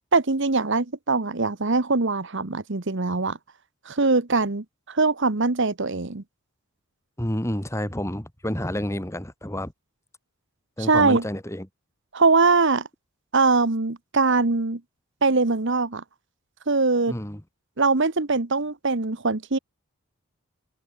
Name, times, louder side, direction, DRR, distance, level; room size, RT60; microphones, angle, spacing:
voice 1, 0.1-3.4 3.8-6.2 10.8-11.2 12.1-12.9 13.3-14.8 15.2-16.0 16.7-17.1 17.8-19.6, right 3 dB, 55° right, 1.2 m, -22 dB
voice 2, 7.2-9.7 10.8-11.7 17.1-17.4, equal, 10° left, 2.5 m, -29 dB
open air
head